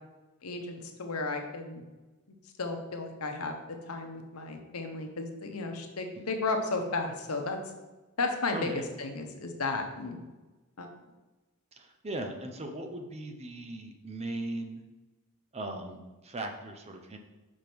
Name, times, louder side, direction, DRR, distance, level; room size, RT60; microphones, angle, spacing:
voice 1, 0.4-1.8 2.6-3.6 3.9-7.6 8.2-8.7 9.0-10.2 10.8-10.9, left 3 dB, 75° left, 4 dB, 1.0 m, -33 dB
voice 2, 8.5-8.8 11.7-14.8 15.5-17.2, right 2 dB, 30° right, 4 dB, 0.8 m, -38 dB
5.3 x 5.0 x 6.0 m, 1.1 s
head